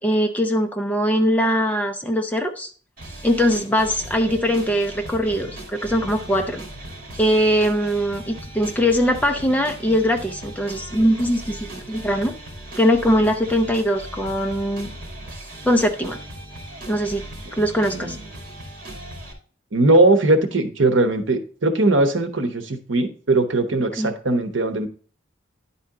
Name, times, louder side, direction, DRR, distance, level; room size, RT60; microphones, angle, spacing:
voice 1, 0.0-2.7 3.2-6.6 7.2-12.3 12.8-14.9 15.6-16.2 16.9-17.2 17.6-18.2 24.0-24.1, equal, 10° left, 4 dB, 0.5 m, -21 dB
sound 1, 3.0-19.3, right 1 dB, 45° right, 2.3 m, -38 dB
voice 2, 19.7-24.9, right 2 dB, 75° right, 7 dB, 1.0 m, -19 dB
10.5 x 4.3 x 3.7 m, 0.42 s
head